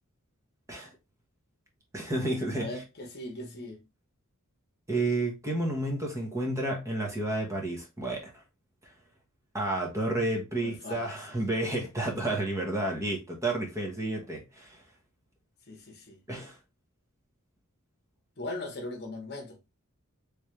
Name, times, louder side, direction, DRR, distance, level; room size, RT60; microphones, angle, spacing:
voice 1, 1.9-2.8 4.9-8.3 8.8-8.9 9.5-14.8 16.3-16.6, right 2 dB, 15° right, 1.0 m, -31 dB
voice 2, 2.5-3.8 10.5-11.2 15.7-16.2 18.4-19.6, left 2 dB, 50° left, 1.1 m, -39 dB
3.4 x 3.2 x 3.1 m
head